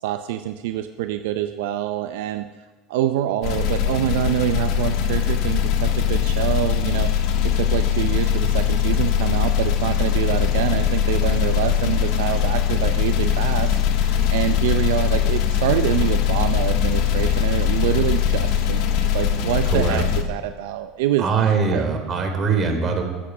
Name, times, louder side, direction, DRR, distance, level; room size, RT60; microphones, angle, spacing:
voice 1, 0.0-2.5 2.9-21.8, right 12 dB, 80° right, 8 dB, 0.6 m, -26 dB
sound 1, 3.4-20.2, left 9 dB, 60° left, 1.6 m, -21 dB
voice 2, 19.6-20.0 21.2-23.0, right 5 dB, 35° right, 4 dB, 3.4 m, -22 dB
22.5 x 8.4 x 6.1 m, 1.3 s
supercardioid pair, 105°, 0 cm